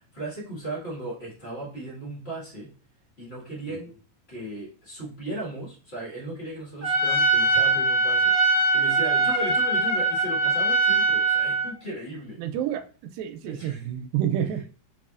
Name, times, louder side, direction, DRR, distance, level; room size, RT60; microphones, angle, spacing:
voice 1, 0.0-2.7 3.2-3.9 4.3-12.4 13.4-13.9 14.6-14.7, right 1 dB, 85° left, -5 dB, 0.5 m, -36 dB
Trumpet, 6.8-11.7, right 3 dB, 45° right, 1.6 m, -22 dB
voice 2, 12.4-12.8 13.1-14.6, right 10 dB, 80° right, 8 dB, 2.1 m, -28 dB
4.8 x 4.0 x 2.4 m, 0.38 s
omnidirectional pair, 4.3 m